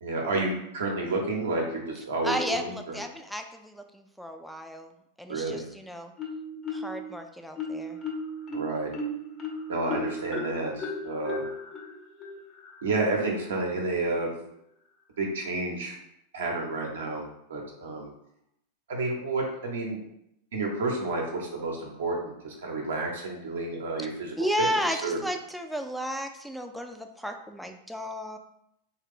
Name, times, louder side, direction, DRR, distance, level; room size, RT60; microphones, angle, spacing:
voice 1, 0.0-3.0 5.3-5.6 8.5-8.9 9.7-11.4 12.8-14.3 15.2-16.0 16.3-17.2 17.5-18.1 18.9-20.0 20.5-25.2, right 2 dB, 75° right, -1 dB, 0.7 m, -30 dB
voice 2, 2.2-4.9 5.2-6.1 6.7-8.0 24.4-28.4, equal, ahead, 4 dB, 0.4 m, -33 dB
Marimba xylophone, 6.2-7.1 7.6-13.1, left 1 dB, 35° left, 0.8 m, -36 dB
3.1 x 2.2 x 3.5 m, 0.77 s
hypercardioid pair, 95°, 0 cm